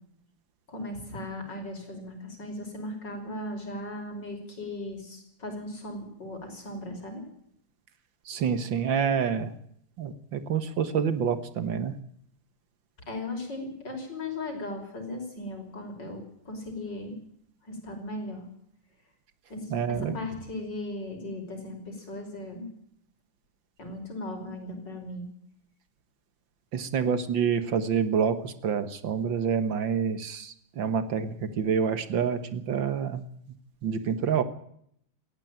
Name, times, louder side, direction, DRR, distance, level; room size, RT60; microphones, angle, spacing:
voice 1, 0.7-7.2 13.1-17.1 17.6-18.4 19.5-22.7 23.8-25.3, left 1 dB, 55° left, 4 dB, 6.2 m, -37 dB
voice 2, 8.3-9.5 10.0-11.9 19.7-20.2 26.7-33.2 33.8-34.4, right 7 dB, 65° right, 12 dB, 2.0 m, -27 dB
19.0 x 15.0 x 9.0 m, 0.70 s
omnidirectional pair, 2.3 m